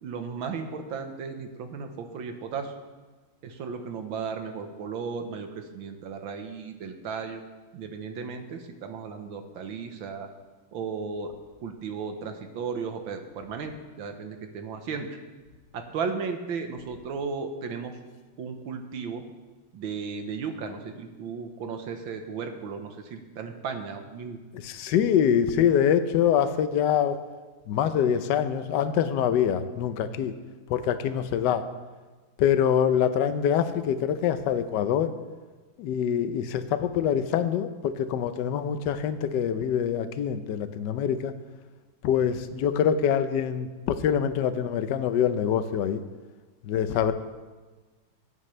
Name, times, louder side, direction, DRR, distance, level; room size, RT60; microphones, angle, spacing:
voice 1, 0.0-2.7 3.4-7.4 7.7-10.3 10.7-11.3 11.6-15.2 15.7-17.9 18.4-19.2 19.7-24.4, right 5 dB, 90° right, 6 dB, 1.8 m, -35 dB
voice 2, 24.5-27.2 27.7-30.3 30.7-31.6 32.4-35.1 35.8-41.3 42.0-46.0 46.6-47.1, left 8 dB, 70° left, 10 dB, 1.2 m, -25 dB
16.5 x 9.5 x 3.3 m, 1.3 s
omnidirectional pair, 2.1 m